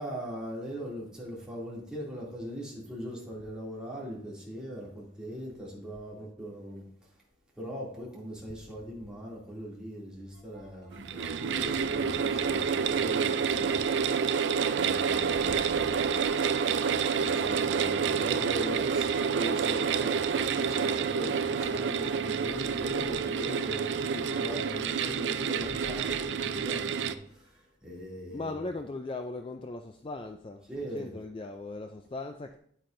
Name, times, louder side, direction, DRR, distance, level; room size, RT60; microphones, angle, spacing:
voice 1, 0.0-6.9 7.6-16.1 17.2-28.6 30.7-31.1, equal, 5° right, 2.5 m, -40 dB
sound 1, 10.3-28.0, equal, 25° right, 2.3 m, -52 dB
sound 2, 10.9-27.1, right 6 dB, 70° right, 0.4 m, -28 dB
voice 2, 15.3-15.9 28.3-32.6, left 2 dB, 25° left, 0.3 m, -39 dB
9.7 x 8.5 x 2.6 m
head